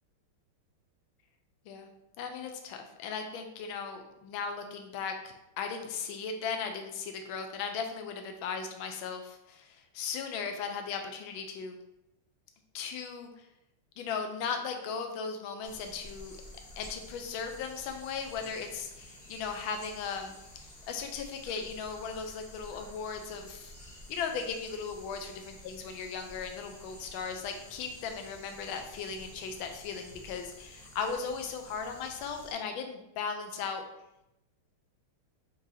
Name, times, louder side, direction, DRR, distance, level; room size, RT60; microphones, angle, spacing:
voice 1, 2.2-11.8 12.7-13.4 14.0-16.4 16.8-23.7 24.1-25.2 25.6-33.8, left 5 dB, 75° left, 5 dB, 1.3 m, -37 dB
sound 1, 15.6-32.5, left 1 dB, 40° left, 1.0 m, -51 dB
6.0 x 3.2 x 2.7 m, 0.87 s
omnidirectional pair, 2.4 m